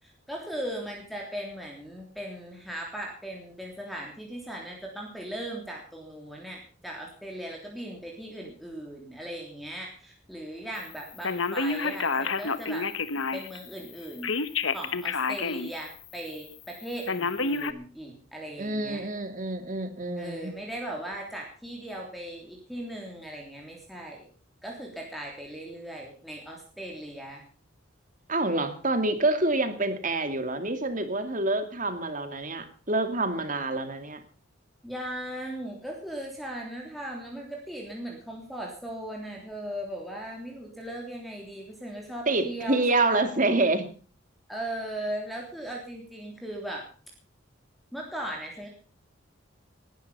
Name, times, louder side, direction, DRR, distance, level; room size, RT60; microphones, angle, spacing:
voice 1, 0.0-12.9 13.3-14.3 14.7-19.1 20.2-24.2 24.6-27.4 34.8-43.3 44.5-46.9 47.9-48.7, right 1 dB, ahead, -1 dB, 3.3 m, -38 dB
Telephone, 11.2-13.6 14.2-15.7 16.1-16.2 17.1-17.7, left 4 dB, 80° left, 1.2 m, -28 dB
voice 2, 18.6-20.5 28.3-34.2 42.3-43.9, right 2 dB, 40° right, 8 dB, 2.3 m, -27 dB
18.5 x 11.5 x 5.5 m, 0.40 s
head